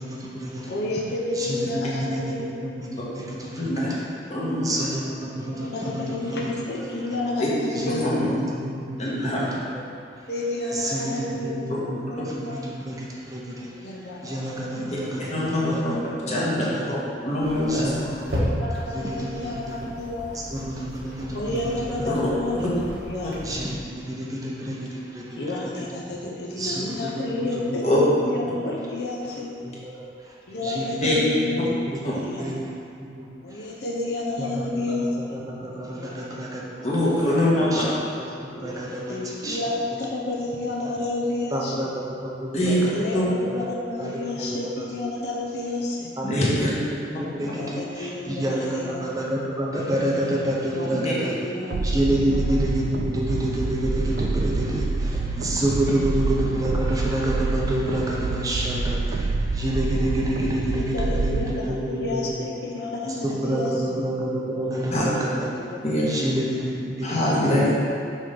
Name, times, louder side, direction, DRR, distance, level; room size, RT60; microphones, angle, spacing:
voice 1, 0.0-0.7 1.3-4.0 4.6-7.2 7.8-9.5 10.7-12.0 12.4-13.7 14.2-15.8 16.2-16.3 16.7-16.8 17.7-17.9 18.7-19.8 20.3-22.1 23.4-25.7 26.6-27.8 28.5-28.6 29.6-29.8 30.6-31.0 32.4-32.7 33.2-33.3 33.6-33.7 34.4-37.3 37.7-37.8 38.2-39.6 41.5-43.2 43.5-43.6 44.0-44.9 46.2-51.3 51.8-62.5 63.0-65.5 66.0-67.7, right 1 dB, 20° right, -4 dB, 0.6 m, -29 dB
voice 2, 0.7-2.5 5.3-8.0 10.3-12.6 13.7-14.5 17.9-18.0 18.5-20.5 21.3-22.6 23.1-23.3 25.4-28.0 28.3-29.5 30.5-31.7 32.3-32.5 33.4-35.1 35.3-35.4 35.7-36.4 37.4-37.5 38.5-38.8 39.1-41.9 42.9-43.1 43.4-46.1 47.6-49.0 50.8-50.9 51.1-51.7 52.1-52.4 60.9-63.7 64.5-64.8 65.6-65.8 67.4-67.7, left 2 dB, 65° left, -3 dB, 0.8 m, -31 dB
voice 3, 3.6-4.0 4.3-4.9 7.4-7.5 7.9-8.4 9.0-9.4 14.8-14.9 15.3-16.0 16.3-17.0 17.2-17.9 22.1-22.2 27.8-28.0 31.0-31.1 32.0-32.1 36.8-37.8 42.5-42.8 43.1-43.2 46.2-46.7 47.4-47.5 50.9-51.1 64.9-65.0 65.8-66.0 67.0-67.7, left 1 dB, 40° left, -7 dB, 1.5 m, -23 dB
sound 1, 17.4-23.8, equal, 85° right, 1.4 m, -33 dB
sound 2, 51.7-61.6, right 3 dB, 60° right, 0.3 m, -27 dB
6.2 x 3.5 x 5.4 m, 2.7 s
head